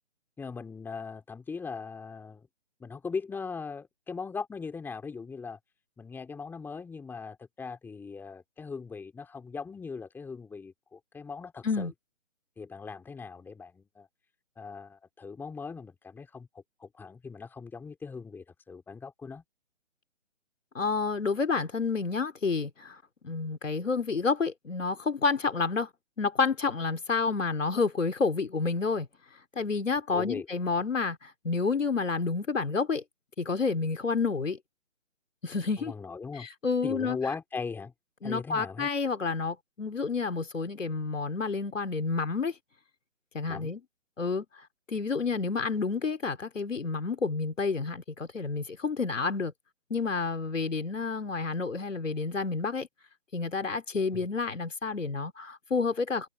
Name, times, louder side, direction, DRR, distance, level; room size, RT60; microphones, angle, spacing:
voice 1, 0.4-2.5 2.8-5.6 6.0-11.9 12.6-14.1 14.6-19.4 30.1-30.5 35.8-36.5 36.8-37.9 38.2-38.9 43.5-43.7 54.1-54.3, left 5 dB, 5° left, 4.0 m, -39 dB
voice 2, 20.7-23.0 23.2-25.9 26.2-29.1 29.6-33.0 33.4-34.6 35.4-35.9 36.4-37.2 38.2-42.5 43.3-43.8 44.2-44.5 44.9-49.5 49.9-52.9 53.3-56.3, left 4 dB, 85° left, 3.9 m, -29 dB
hypercardioid pair, 150°, 37 cm